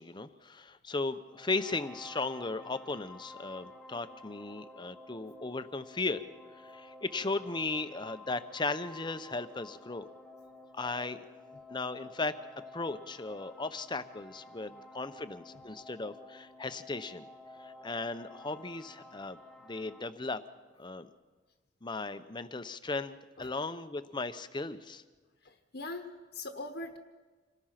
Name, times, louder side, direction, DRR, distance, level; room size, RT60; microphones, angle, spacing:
voice 1, 0.0-6.2 6.6-10.1 10.7-11.2 11.7-12.4 12.7-17.3 17.6-20.4 20.8-21.1 21.8-25.0, left 3 dB, 25° left, 11 dB, 0.8 m, -36 dB
sound 1, 1.3-20.1, left 2 dB, ahead, 1.1 m, -52 dB
voice 2, 25.4-27.0, left 2 dB, 55° left, 5 dB, 1.3 m, -42 dB
27.0 x 18.5 x 5.9 m, 1.3 s
head